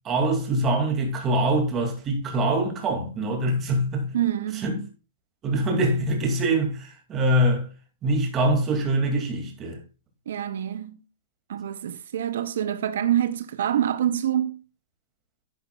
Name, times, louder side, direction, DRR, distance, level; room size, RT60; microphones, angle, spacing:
voice 1, 0.0-4.1 4.6-4.8 5.4-7.6 8.0-9.8, right 1 dB, 15° right, 2.3 m, -24 dB
voice 2, 4.1-4.8 10.3-11.0 11.5-14.6, right 10 dB, 75° right, 0.6 m, -26 dB
11.0 x 10.0 x 2.3 m
supercardioid pair, 175°, 0 cm